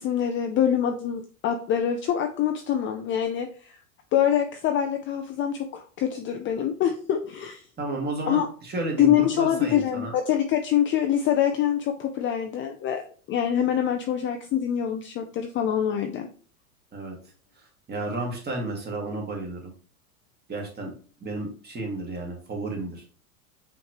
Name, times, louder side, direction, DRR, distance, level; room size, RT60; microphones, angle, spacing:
voice 1, 0.0-3.8 4.1-7.6 8.3-8.5 9.0-13.0 13.3-16.3, left 9 dB, 30° left, 5 dB, 0.4 m, -25 dB
voice 2, 7.8-10.1 16.9-17.2 17.6-19.7 20.5-20.9 21.2-23.0, right 2 dB, 20° right, 1 dB, 1.8 m, -32 dB
5.6 x 3.2 x 2.9 m, 0.41 s
hypercardioid pair, 105°, 44 cm